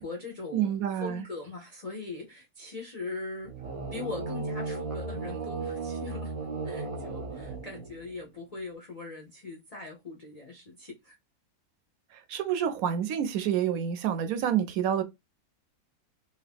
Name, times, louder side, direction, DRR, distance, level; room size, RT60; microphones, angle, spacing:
voice 1, 0.0-3.5 3.9-6.3 6.6-11.2, left 3 dB, 45° left, 0.5 m, -41 dB
voice 2, 0.5-1.2 12.1-15.0, right 9 dB, 75° right, 1.0 m, -28 dB
sound 1, 3.4-8.2, right 3 dB, 55° right, 0.3 m, -35 dB
2.9 x 2.5 x 3.3 m
omnidirectional pair, 1.6 m